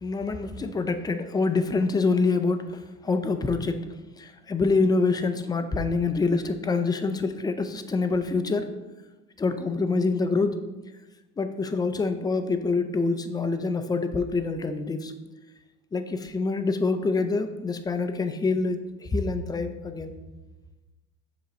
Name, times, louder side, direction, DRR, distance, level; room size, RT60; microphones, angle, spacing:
voice 1, 0.0-3.8 4.2-8.7 9.4-10.6 11.4-15.1 15.9-20.1, left 3 dB, 10° left, 9 dB, 0.4 m, -26 dB
7.8 x 2.9 x 5.1 m, 1.1 s
supercardioid pair, 110°, 34 cm